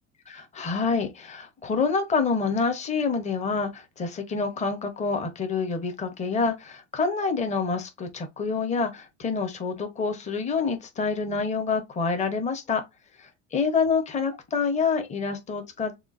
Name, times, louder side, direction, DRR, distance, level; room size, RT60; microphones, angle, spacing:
voice 1, 0.3-12.8 13.2-16.0, left 5 dB, 20° left, 0.9 m, -27 dB
6.8 x 2.4 x 2.5 m
cardioid pair, 150°, 32 cm